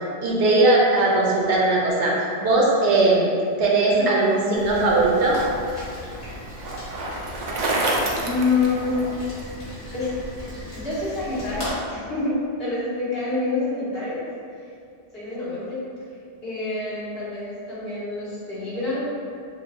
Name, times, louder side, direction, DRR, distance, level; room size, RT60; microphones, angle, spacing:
voice 1, 0.2-3.3 3.6-5.4, right 2 dB, 75° right, -3 dB, 1.0 m, -19 dB
Rain, 4.6-11.7, equal, 75° left, 1.6 m, -37 dB
Bicycle, 5.0-9.4, right 2 dB, 55° right, 0.5 m, -28 dB
voice 2, 8.2-9.0 9.9-10.1 10.7-14.2 15.1-15.8 16.4-19.0, left 3 dB, 60° left, -11 dB, 1.6 m, -27 dB
6.3 x 2.2 x 2.5 m, 2.3 s
omnidirectional pair, 1.2 m